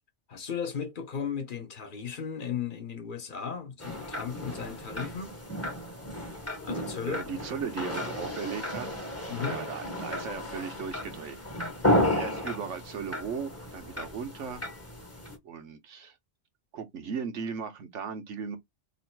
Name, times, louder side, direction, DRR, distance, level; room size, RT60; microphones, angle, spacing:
voice 1, 0.3-5.4 6.6-7.2 9.3-9.7, left 7 dB, 45° left, 1.1 m, -36 dB
sound 1, 3.8-15.4, left 1 dB, 15° left, 0.8 m, -33 dB
voice 2, 7.0-8.9 9.5-11.4 12.2-14.6 15.4-16.1 16.7-18.6, right 6 dB, 85° right, 1.3 m, -37 dB
3.1 x 2.6 x 4.4 m
omnidirectional pair, 1.2 m